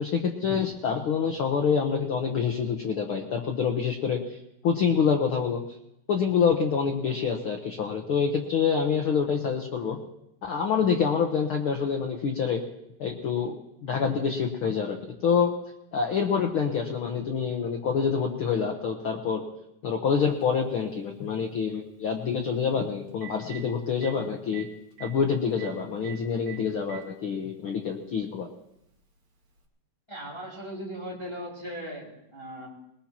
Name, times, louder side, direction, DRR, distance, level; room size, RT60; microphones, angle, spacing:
voice 1, 0.0-4.4 4.6-5.6 6.1-10.0 10.4-12.6 13.0-15.0 15.2-15.5 15.9-19.4 19.8-24.7 25.0-28.5, left 6 dB, 75° left, 3 dB, 1.2 m, -26 dB
Telephone, 20.4-20.5 22.7-22.8 23.1-23.6 24.0-24.1 24.5-24.6 24.9-25.1 25.6-25.7 26.0-26.1 26.5-27.0 28.0-28.1 29.6-29.7, right 12 dB, 40° right, 2.1 m, -42 dB
voice 2, 30.1-32.7, equal, 10° left, -2 dB, 2.6 m, -38 dB
21.5 x 20.5 x 2.9 m, 0.82 s
omnidirectional pair, 3.9 m